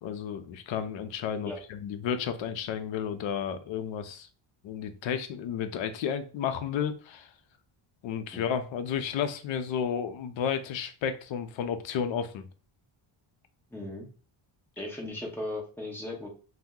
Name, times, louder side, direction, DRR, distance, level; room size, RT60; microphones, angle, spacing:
voice 1, 0.0-4.3 4.6-7.3 8.0-12.5, left 8 dB, 65° left, 9 dB, 0.6 m, -32 dB
voice 2, 13.7-14.1 14.8-16.3, left 1 dB, 5° left, -2 dB, 0.7 m, -37 dB
2.7 x 2.1 x 3.5 m, 0.38 s
cardioid pair, 155°, 50 cm